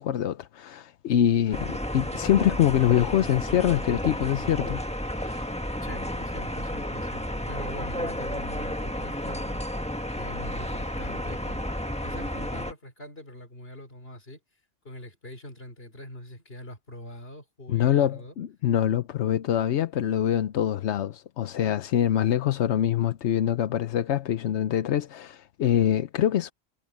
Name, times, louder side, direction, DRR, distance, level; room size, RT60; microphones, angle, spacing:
voice 1, 0.0-4.8 5.2-5.5 17.7-26.5, left 10 dB, 90° left, 1.0 m, -24 dB
sound 1, 1.5-12.7, equal, 5° left, 1.3 m, -32 dB
voice 2, 5.8-9.6 10.1-14.4 14.8-18.3, left 1 dB, 60° left, 4.3 m, -43 dB
omnidirectional pair, 1.1 m